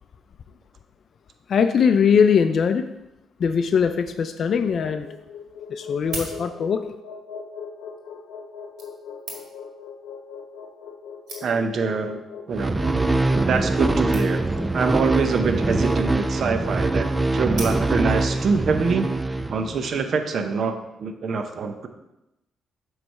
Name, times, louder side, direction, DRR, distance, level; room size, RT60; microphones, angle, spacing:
voice 1, 1.5-2.9 3.4-5.1 5.7-6.9, left 6 dB, 55° left, 8 dB, 0.4 m, -20 dB
sound 1, 4.5-18.7, left 6 dB, 85° left, 0.8 m, -41 dB
sound 2, 6.0-6.9 7.8-8.0 8.8-9.8 10.6-10.7 10.9-11.0 11.3-11.8 12.5-12.7 13.0-13.1 13.3-13.4 13.6-13.8 14.1-14.6 15.6-16.1 17.5-18.2 18.8-18.9, right 3 dB, 75° right, 1.9 m, -39 dB
voice 2, 11.4-12.2 12.5-12.7 13.5-14.4 14.7-17.1 17.3-19.1 19.5-21.9, right 5 dB, 55° right, 6 dB, 0.7 m, -24 dB
sound 3, 12.5-20.0, right 2 dB, 15° right, 0.4 m, -23 dB
7.6 x 3.2 x 5.4 m, 0.92 s
cardioid pair, 90°, 0 cm